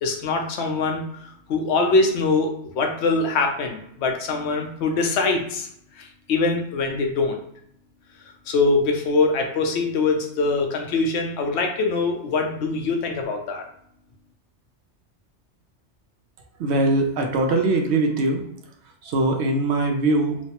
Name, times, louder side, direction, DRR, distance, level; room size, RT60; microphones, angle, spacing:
voice 1, 0.0-1.0 1.5-5.7 6.0-7.4 8.5-13.6, left 3 dB, 75° left, 3 dB, 0.8 m, -23 dB
voice 2, 16.6-18.4 19.0-20.4, right 2 dB, 70° right, 3 dB, 0.8 m, -21 dB
3.1 x 2.0 x 2.8 m, 0.70 s
omnidirectional pair, 1.2 m